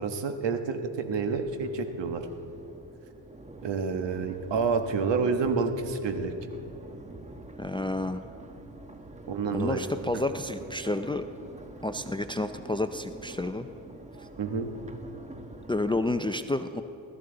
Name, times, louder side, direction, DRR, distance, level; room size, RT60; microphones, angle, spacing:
voice 1, 0.0-2.2 3.6-6.3 9.3-9.8 10.1-10.2 14.4-14.7, right 5 dB, 65° right, 7 dB, 1.3 m, -29 dB
Crowd, 1.0-16.2, right 2 dB, 15° right, 1.1 m, -46 dB
voice 2, 7.6-8.2 9.5-11.2 11.8-13.7 14.2-14.3 15.7-16.8, left 2 dB, 10° left, 9 dB, 0.4 m, -30 dB
20.0 x 13.5 x 3.9 m, 2.8 s
cardioid pair, 80°, 46 cm